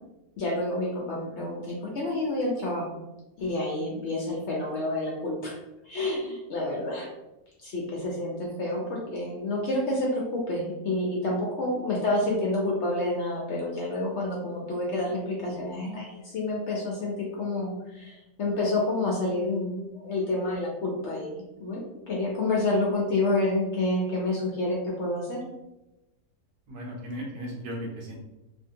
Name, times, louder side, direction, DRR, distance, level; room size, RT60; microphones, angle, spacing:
voice 1, 0.4-3.0 3.4-5.6 5.8-7.1 7.6-25.4, left 2 dB, 65° left, -2 dB, 0.7 m, -29 dB
voice 2, 26.7-28.1, equal, 80° right, -1 dB, 1.3 m, -36 dB
2.8 x 2.6 x 2.6 m, 0.97 s
omnidirectional pair, 1.6 m